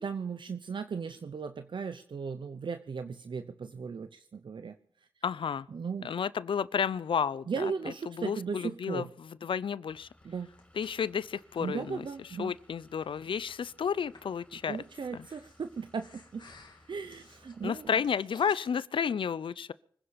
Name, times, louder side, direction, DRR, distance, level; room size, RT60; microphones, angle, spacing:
voice 1, 0.0-4.8 5.7-6.1 7.5-9.1 10.2-10.5 11.6-12.6 14.7-16.5 16.9-18.0, right 5 dB, 70° right, 0.8 m, -37 dB
voice 2, 5.2-5.7 6.0-7.7 8.1-9.1 9.4-10.1 10.8-12.1 12.4-14.8 15.1-15.3 17.6-19.7, left 7 dB, 75° left, 0.5 m, -31 dB
Vehicle / Engine, 9.9-17.9, left 1 dB, 15° left, 6.8 m, -62 dB
Breathing, 10.2-18.7, left 3 dB, 60° left, 2.9 m, -59 dB
25.0 x 10.5 x 5.2 m
cardioid pair, 50°, 9 cm